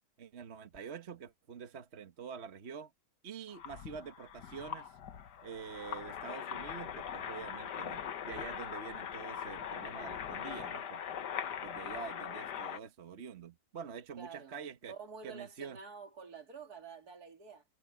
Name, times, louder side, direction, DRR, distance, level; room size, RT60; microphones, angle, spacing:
voice 1, 0.2-2.9 3.2-4.9 5.4-11.2 11.6-15.0 15.2-15.8, right 6 dB, 40° right, 1.3 m, -46 dB
sound 1, 3.5-12.8, left 8 dB, 70° left, 1.7 m, -41 dB
voice 2, 14.2-14.6 14.9-17.6, right 5 dB, 60° right, 2.8 m, -49 dB
omnidirectional pair, 1.9 m